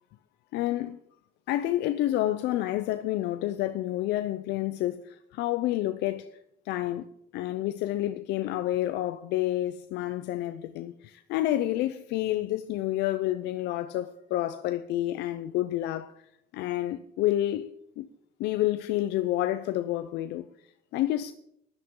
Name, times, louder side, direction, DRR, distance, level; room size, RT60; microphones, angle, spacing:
voice 1, 0.5-1.0 1.5-6.3 6.7-7.1 7.3-16.2 16.5-18.1 18.4-21.3, left 14 dB, 85° left, 0.6 m, -29 dB
16.0 x 11.5 x 3.8 m
cardioid pair, 110°, 17 cm